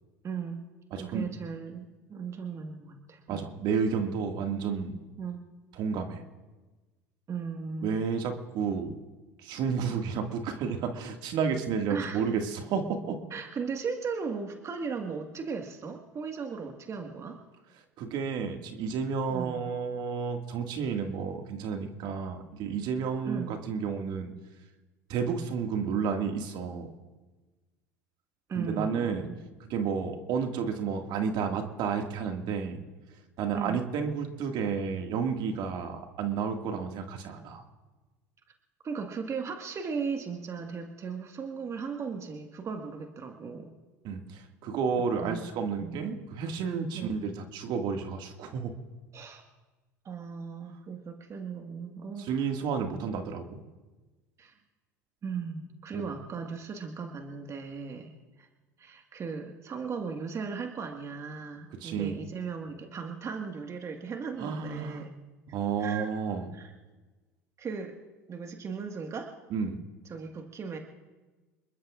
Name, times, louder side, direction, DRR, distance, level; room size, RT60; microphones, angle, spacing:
voice 1, 0.2-0.6 0.9-3.4 5.2-5.4 7.3-8.0 11.9-12.2 13.3-17.4 19.3-19.6 23.2-23.5 28.5-29.4 33.5-33.8 38.8-43.7 45.2-45.5 45.8-46.0 46.9-47.2 49.1-49.4 50.0-52.4 54.4-54.5 55.2-58.5 58.8-65.1 65.8-66.1 66.5-66.7 67.6-67.9 68.3-69.3 70.0-70.8, right 5 dB, 35° right, 3 dB, 1.7 m, -37 dB
voice 2, 0.9-1.3 3.3-5.0 5.8-6.2 7.8-8.9 9.4-13.2 18.0-24.3 25.1-26.9 28.5-29.3 29.7-32.8 33.4-37.6 44.0-48.7 52.2-53.6 55.9-56.0 61.8-62.2 64.4-65.0 65.5-66.5 69.5-69.8, right 6 dB, 55° right, 4 dB, 2.0 m, -31 dB
27.0 x 21.5 x 2.5 m, 1.2 s
hypercardioid pair, 80°, 9 cm